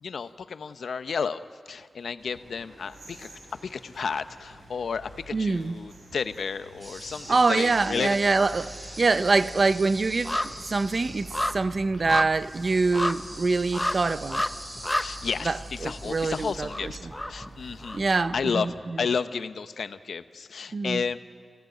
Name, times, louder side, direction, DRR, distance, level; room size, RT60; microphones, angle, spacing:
voice 1, 0.0-8.2 13.8-14.0 15.0-18.0 18.3-21.2, left 5 dB, 85° left, 0.8 m, -32 dB
sound 1, 2.2-18.5, right 1 dB, 85° right, 4.9 m, -47 dB
voice 2, 5.3-5.8 7.3-14.5 15.4-17.1 17.9-19.1 20.7-21.0, right 3 dB, 45° right, 0.6 m, -25 dB
sound 2, 6.8-11.6 12.2-16.5, right 1 dB, 25° right, 6.6 m, -44 dB
sound 3, 7.3-8.1 8.4-18.3 18.7-18.8, left 1 dB, 10° left, 0.6 m, -33 dB
30.0 x 17.5 x 9.2 m
wide cardioid pair, 135°, 0 cm